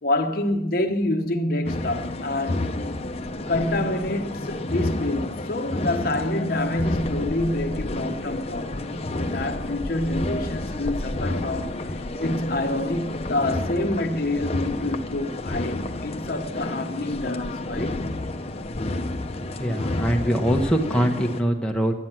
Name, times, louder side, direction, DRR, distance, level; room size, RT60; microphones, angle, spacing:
voice 1, 0.0-2.7 3.5-11.8 12.2-18.0, left 1 dB, 50° left, 1.1 m, -27 dB
sound 1, 1.7-21.4, left 2 dB, 30° left, 0.7 m, -30 dB
voice 2, 19.4-21.9, equal, 5° left, 1.2 m, -23 dB
11.0 x 9.5 x 7.5 m
head